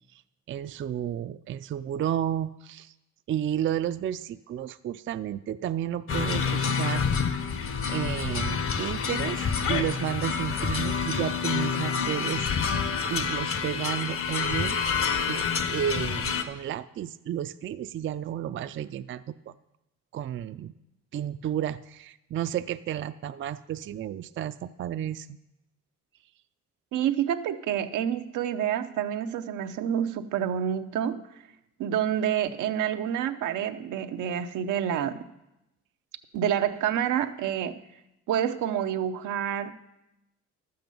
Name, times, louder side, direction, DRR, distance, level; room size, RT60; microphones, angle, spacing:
voice 1, 0.5-2.9 3.3-7.1 7.9-12.5 13.1-14.8 15.3-19.5 20.1-20.7 21.1-25.4, right 10 dB, 40° right, 12 dB, 0.4 m, -32 dB
sound 1, 6.1-16.4, left 6 dB, 45° left, 0.9 m, -28 dB
voice 2, 26.9-31.2 31.8-35.2 36.3-37.8 38.3-39.7, right 9 dB, 85° right, 7 dB, 0.7 m, -28 dB
12.0 x 7.8 x 5.3 m, 0.91 s
cardioid pair, 90°, 30 cm